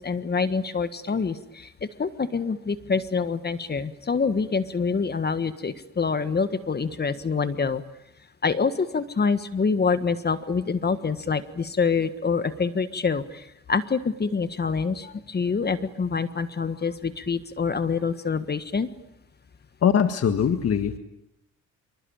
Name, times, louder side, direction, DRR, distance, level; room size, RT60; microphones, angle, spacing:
voice 1, 0.0-1.7 2.0-7.8 8.4-18.9, left 5 dB, 35° left, 11 dB, 1.5 m, -26 dB
voice 2, 19.8-21.0, left 8 dB, 55° left, 8 dB, 1.7 m, -21 dB
26.5 x 24.5 x 8.9 m, 0.85 s
cardioid pair, 90°, 30 cm